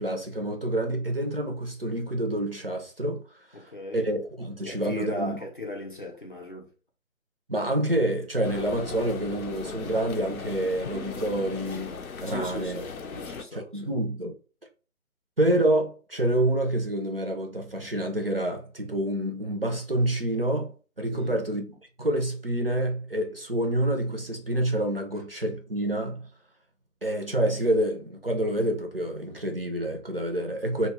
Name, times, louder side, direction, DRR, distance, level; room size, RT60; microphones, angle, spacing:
voice 1, 0.0-3.2 3.5-3.7 3.9-5.4 7.5-12.8 13.5-14.3 15.4-26.3 27.0-30.9, right 1 dB, 45° right, 0.4 m, -27 dB
voice 2, 3.5-4.1 4.6-6.7 12.3-13.9 21.1-21.4, equal, 40° left, 0.5 m, -37 dB
sound 1, 8.4-13.4, left 5 dB, 90° left, 0.6 m, -38 dB
2.1 x 2.0 x 3.4 m
figure-of-eight pair, 155°, 42 cm